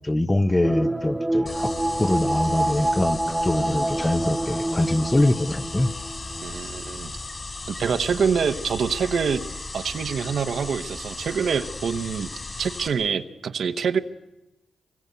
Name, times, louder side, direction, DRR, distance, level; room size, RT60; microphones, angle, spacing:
voice 1, 0.0-1.7 2.0-5.9, left 1 dB, 20° left, 13 dB, 1.0 m, -23 dB
sound 1, 0.6-6.6 6.9-7.0, right 1 dB, 10° right, 0.9 m, -27 dB
sound 2, 1.5-12.9, left 3 dB, 40° left, 5.4 m, -36 dB
voice 2, 6.4-7.1 7.7-9.4 9.7-12.3 12.6-14.0, right 6 dB, 70° right, 8 dB, 1.0 m, -25 dB
24.0 x 21.5 x 8.2 m, 0.96 s
cardioid pair, 60°, 0 cm